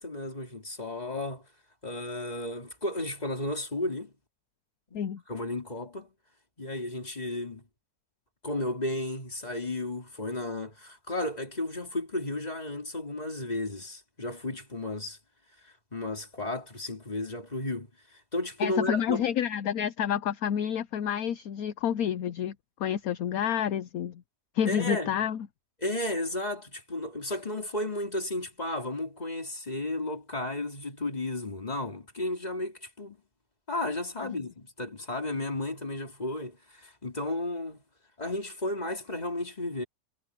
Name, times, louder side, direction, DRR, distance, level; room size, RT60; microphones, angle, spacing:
voice 1, 0.0-1.5 1.8-4.1 4.9-6.1 6.6-7.7 8.4-15.2 15.6-19.3 24.6-25.3 25.8-33.2 33.7-37.8 38.2-39.8, left 2 dB, 20° left, 3.1 m, -33 dB
voice 2, 18.6-22.5 22.8-24.2 24.5-25.4, left 9 dB, 65° left, 1.0 m, -29 dB
omnidirectional pair, 1.9 m